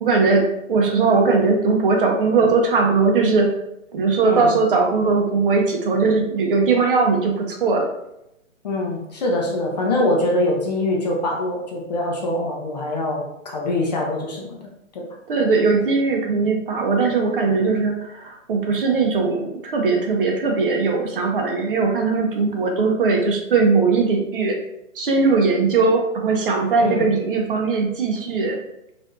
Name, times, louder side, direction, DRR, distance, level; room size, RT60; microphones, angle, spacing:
voice 1, 0.0-3.5 3.9-7.9 15.3-24.6 24.9-28.6, right 4 dB, 45° right, 2 dB, 0.6 m, -19 dB
voice 2, 4.2-4.5 8.6-14.6 14.9-15.0 26.8-27.1, left 1 dB, 30° left, -1 dB, 0.5 m, -23 dB
4.5 x 2.6 x 2.5 m, 0.84 s
hypercardioid pair, 150°, 40 cm